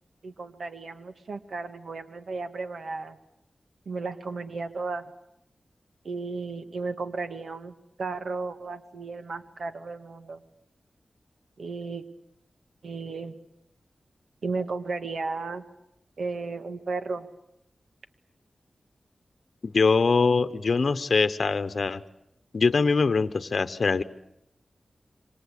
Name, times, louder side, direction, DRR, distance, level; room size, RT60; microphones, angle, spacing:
voice 1, 0.2-3.2 3.9-5.0 6.0-10.4 11.6-12.0 12.8-13.4 14.4-15.6 16.2-17.3, right 4 dB, 80° right, 9 dB, 1.8 m, -34 dB
voice 2, 19.6-22.0 22.5-24.0, left 4 dB, 65° left, 11 dB, 1.0 m, -23 dB
27.5 x 24.5 x 8.4 m, 0.80 s
wide cardioid pair, 70°, 0 cm